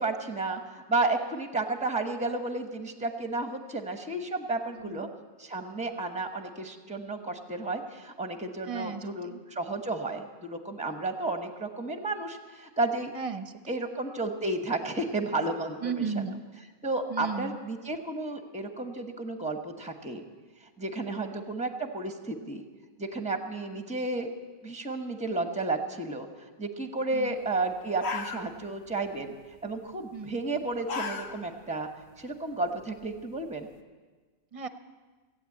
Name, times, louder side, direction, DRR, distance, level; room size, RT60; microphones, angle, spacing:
voice 1, 0.0-5.1 5.4-13.1 13.7-16.2 16.8-20.2 20.8-22.6 23.0-24.3 24.6-26.3 26.6-29.3 29.6-31.9 32.2-33.7, right 2 dB, 5° right, 6 dB, 1.0 m, -32 dB
voice 2, 4.7-5.1 8.7-9.4 13.1-13.8 15.8-16.4 17.1-17.6 21.2-21.4 27.1-27.3 30.1-30.4 34.5-34.7, right 5 dB, 35° right, 10 dB, 0.7 m, -35 dB
sound 1, 27.5-27.6 27.9-28.9 29.2-29.5 30.5-31.6 32.0-32.1 32.6-33.7, left 4 dB, 75° left, 1.2 m, -36 dB
16.0 x 8.5 x 8.4 m, 1.4 s
omnidirectional pair, 1.1 m